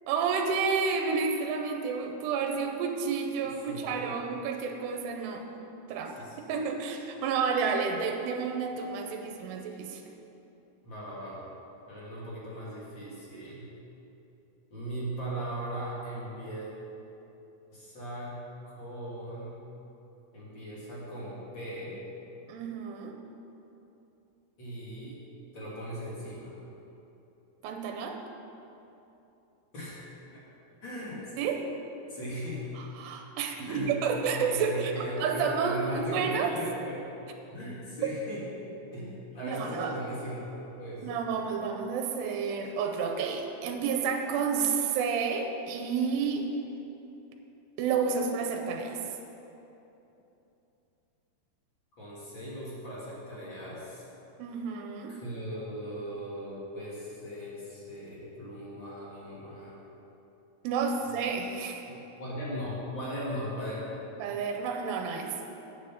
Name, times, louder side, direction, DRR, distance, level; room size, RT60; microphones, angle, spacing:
voice 1, 0.1-5.4 5.9-6.1 6.5-10.0 22.5-23.2 27.6-28.2 31.4-31.7 32.8-36.5 38.0-38.1 39.4-40.0 41.0-46.5 47.8-49.0 54.4-55.2 60.6-61.9 64.2-65.3, right 5 dB, 85° right, 3 dB, 2.7 m, -30 dB
voice 2, 3.7-4.0 6.2-6.5 10.8-11.5 11.9-13.7 14.7-16.7 17.7-19.6 20.3-22.0 24.6-25.2 25.5-26.5 29.7-30.0 30.3-30.4 30.8-31.3 32.1-32.7 33.6-33.9 34.3-37.0 37.5-38.4 38.9-41.2 52.0-54.0 55.1-59.7 61.0-61.1 61.9-64.0, equal, 40° left, -7 dB, 1.8 m, -38 dB
9.0 x 7.6 x 5.9 m, 3.0 s
omnidirectional pair, 4.9 m